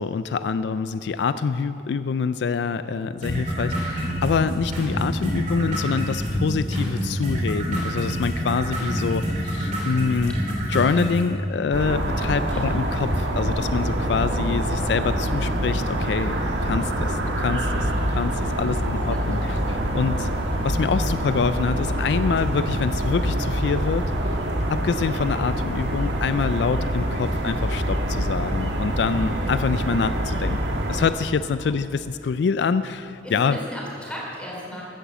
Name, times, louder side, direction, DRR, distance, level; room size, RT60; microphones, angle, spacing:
voice 1, 0.0-10.3 10.7-16.4 16.6-20.3 20.6-24.0 24.7-30.6 30.9-33.6, left 5 dB, 70° left, 13 dB, 0.4 m, -26 dB
sound 1, 3.2-11.2, equal, 50° right, 4.1 m, -27 dB
sound 2, 11.7-31.1, equal, 90° right, 1.5 m, -25 dB
voice 2, 12.4-12.7 18.7-18.8 19.1-19.6 29.1-29.4 31.6-31.8 33.2-34.8, equal, 5° left, -4 dB, 3.2 m, -36 dB
14.0 x 9.0 x 7.4 m, 2.8 s
head